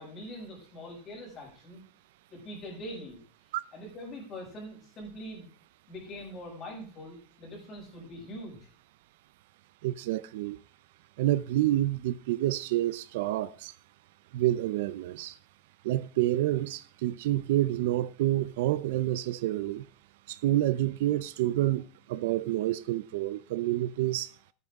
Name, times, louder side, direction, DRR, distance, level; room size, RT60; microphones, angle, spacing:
voice 1, 0.0-1.8 2.3-3.2 3.7-5.5 5.9-8.6, equal, 25° left, 6.2 m, -43 dB
voice 2, 9.8-10.6 11.2-13.7 14.3-15.4 15.8-19.9 20.3-24.3, right 14 dB, 65° right, 0.6 m, -28 dB
14.5 x 9.5 x 3.7 m
supercardioid pair, 175°, 0 cm